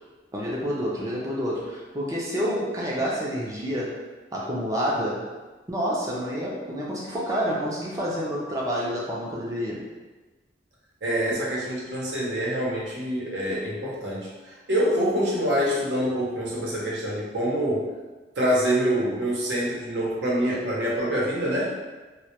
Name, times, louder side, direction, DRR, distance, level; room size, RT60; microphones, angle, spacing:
voice 1, 0.3-4.0 4.3-5.3 5.7-9.9, equal, 20° right, -5 dB, 0.4 m, -28 dB
voice 2, 11.0-17.9 18.4-21.7, equal, 90° right, -5 dB, 0.7 m, -26 dB
2.1 x 2.1 x 2.8 m, 1.2 s
head